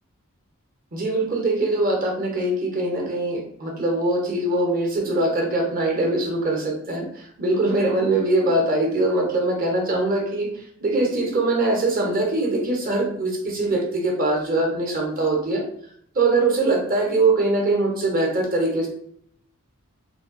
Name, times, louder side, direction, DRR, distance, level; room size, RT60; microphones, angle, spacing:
voice 1, 0.9-10.5 10.8-15.6 16.1-18.9, right 2 dB, 45° right, 0 dB, 1.0 m, -22 dB
3.5 x 2.3 x 3.7 m, 0.67 s
head